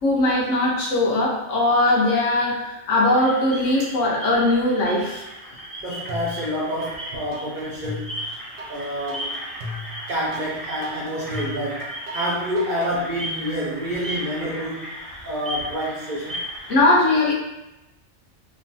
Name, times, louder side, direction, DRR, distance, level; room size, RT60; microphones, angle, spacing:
voice 1, 0.0-5.2 16.7-17.3, left 2 dB, 75° left, -3 dB, 1.0 m, -20 dB
sound 1, 3.2-16.8, equal, ahead, 0.4 m, -36 dB
voice 2, 5.8-8.1 8.7-9.3 10.1-11.8 12.1-14.8 15.2-16.4, equal, 60° right, -5 dB, 0.5 m, -28 dB
sound 2, 6.1-6.9 7.3-12.9, left 1 dB, 85° right, 1.0 m, -36 dB
3.0 x 2.2 x 2.6 m, 0.94 s
omnidirectional pair, 1.3 m